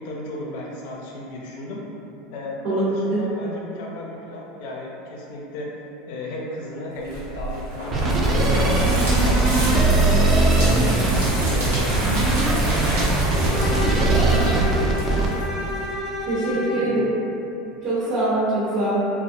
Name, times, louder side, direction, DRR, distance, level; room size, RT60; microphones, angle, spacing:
voice 1, 0.0-1.8 2.3-5.7 6.1-10.2 10.5-13.8 14.4-15.4 16.5-17.0, left 2 dB, 70° left, -2 dB, 0.4 m, -34 dB
voice 2, 2.6-3.2 16.3-17.0 17.8-19.0, right 2 dB, 70° right, -11 dB, 0.7 m, -23 dB
sound 1, 7.0-15.9, right 1 dB, 90° right, 1.2 m, -29 dB
sound 2, 7.9-15.3, right 2 dB, 30° right, 0.4 m, -20 dB
Bowed string instrument, 13.5-16.9, left 1 dB, 20° left, 0.8 m, -29 dB
2.3 x 2.0 x 2.6 m, 2.8 s
supercardioid pair, 105°, 0 cm